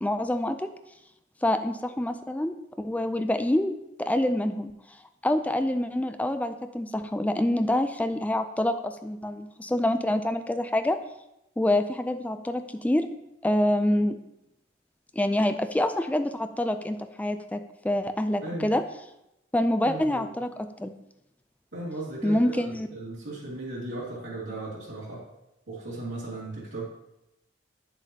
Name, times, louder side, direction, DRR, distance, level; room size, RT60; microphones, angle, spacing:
voice 1, 0.0-0.7 1.4-4.7 5.2-11.0 11.6-13.1 13.4-14.2 15.1-18.8 19.5-20.9 22.2-22.9, left 1 dB, 10° left, 8 dB, 0.3 m, -26 dB
voice 2, 19.8-20.2 21.7-25.2 25.7-26.9, right 2 dB, 90° right, -7 dB, 2.4 m, -36 dB
8.1 x 7.3 x 2.8 m, 0.88 s
head